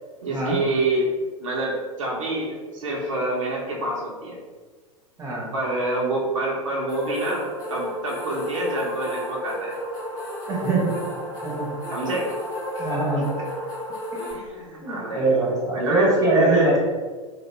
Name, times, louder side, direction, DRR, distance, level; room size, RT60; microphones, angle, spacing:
voice 1, 0.2-1.1 1.4-4.4 5.5-7.4 7.7-9.7 11.9-12.3 12.7-12.8 14.2-15.3 15.7-16.8, right 1 dB, 65° right, -3 dB, 0.6 m, -27 dB
voice 2, 5.2-5.5 10.5-10.9 11.4-11.8 12.8-13.3 14.8-16.8, right 2 dB, 15° right, -4 dB, 0.7 m, -22 dB
sound 1, 6.9-14.3, equal, 25° left, 0.7 m, -32 dB
2.2 x 2.0 x 3.1 m, 1.4 s
figure-of-eight pair, 90°, 18 cm